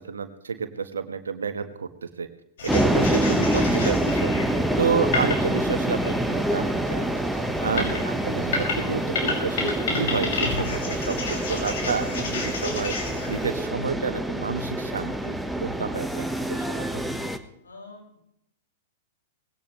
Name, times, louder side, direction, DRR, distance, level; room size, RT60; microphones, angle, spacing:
voice 1, 0.0-1.9 2.2-2.3 2.6-7.1 7.6-13.0 13.3-17.0, right 5 dB, 80° right, 9 dB, 1.4 m, -30 dB
sound 1, 2.6-13.5, left 3 dB, 65° left, 6.1 m, -32 dB
sound 2, 2.7-17.4, right 1 dB, ahead, 1.2 m, -26 dB
voice 2, 17.6-18.2, left 3 dB, 80° left, 0 dB, 5.6 m, -45 dB
20.0 x 17.5 x 3.2 m, 0.77 s
figure-of-eight pair, 105°, 0 cm